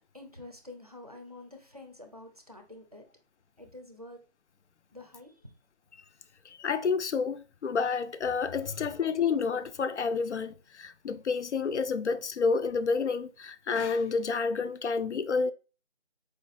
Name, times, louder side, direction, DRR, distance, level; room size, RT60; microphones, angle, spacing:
voice 1, 0.1-3.0 3.6-4.2 4.9-5.5, left 2 dB, 35° right, 0.4 m, -48 dB
voice 2, 6.6-15.5, left 5 dB, 85° left, 0.5 m, -29 dB
4.5 x 2.4 x 2.5 m
figure-of-eight pair, 165°, 34 cm